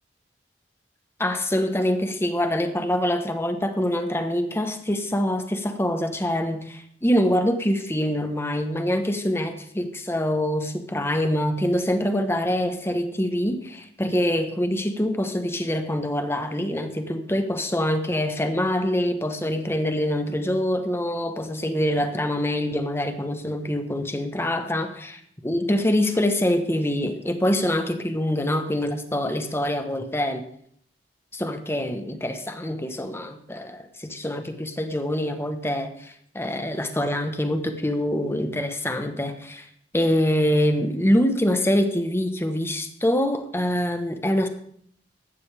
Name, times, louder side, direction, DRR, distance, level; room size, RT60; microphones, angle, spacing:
voice 1, 1.2-30.4 31.3-39.7 39.9-44.5, left 1 dB, 15° left, 7 dB, 1.2 m, -25 dB
16.0 x 12.0 x 3.5 m, 0.66 s
head